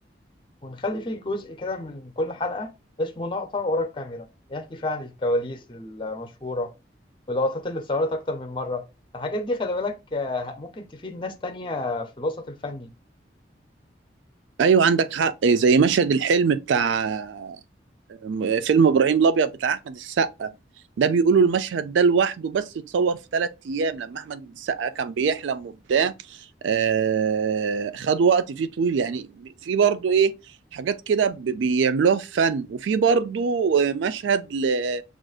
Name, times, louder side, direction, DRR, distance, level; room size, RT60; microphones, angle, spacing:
voice 1, 0.6-2.7 3.0-6.7 7.3-8.9 9.1-12.9, left 2 dB, 25° left, 0.5 m, -29 dB
voice 2, 14.6-17.6 18.2-20.5 21.0-26.4 26.6-30.4 30.7-35.0, right 5 dB, 85° right, 0.4 m, -22 dB
6.2 x 2.5 x 2.3 m
head